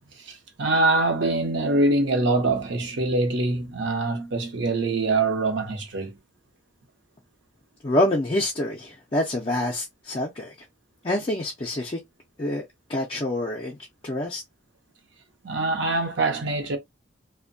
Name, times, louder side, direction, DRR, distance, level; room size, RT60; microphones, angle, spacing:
voice 1, 0.2-6.1 15.4-16.8, right 2 dB, 65° right, 0.7 m, -24 dB
voice 2, 7.8-10.5 11.0-12.0 12.4-13.8 14.0-14.4, left 1 dB, 25° left, 0.4 m, -26 dB
2.6 x 2.1 x 2.5 m
head